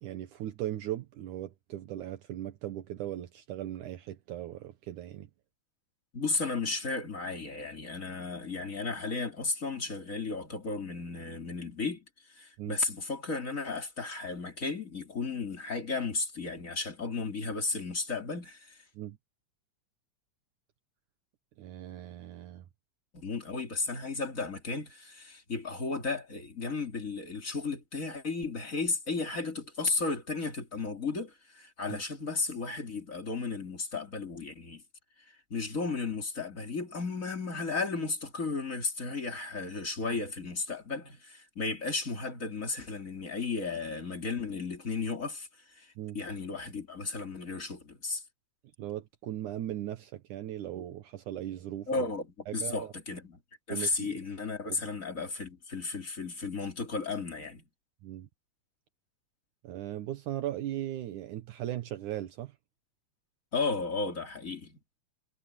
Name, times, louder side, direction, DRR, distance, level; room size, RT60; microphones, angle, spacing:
voice 1, 0.0-5.3 12.6-12.8 19.0-19.2 21.6-22.6 31.9-32.0 46.0-46.2 48.8-52.0 52.5-52.9 53.7-54.2 54.7-54.8 58.0-58.3 59.6-62.5, right 12 dB, 70° right, 2.5 m, -38 dB
voice 2, 6.1-18.8 23.1-34.8 35.5-48.2 51.9-53.4 53.7-57.6 63.5-64.8, left 4 dB, 25° left, 2.8 m, -34 dB
omnidirectional pair, 3.7 m